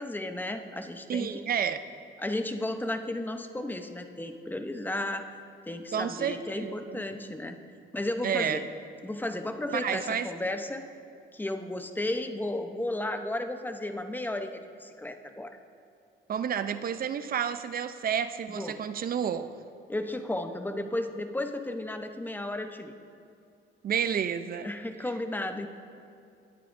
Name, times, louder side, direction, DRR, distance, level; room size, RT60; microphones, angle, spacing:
voice 1, 0.0-1.3 2.2-5.3 5.7-7.6 7.9-8.7 9.0-10.9 11.3-15.6 18.5-18.8 19.9-22.9 24.6-25.7, left 1 dB, 10° left, 7 dB, 0.7 m, -34 dB
voice 2, 1.1-1.8 5.9-7.0 8.2-8.6 9.7-10.3 16.3-19.5 23.8-24.7, right 8 dB, 50° right, 12 dB, 0.5 m, -30 dB
20.0 x 8.6 x 2.6 m, 2.5 s
cardioid pair, 90°, 20 cm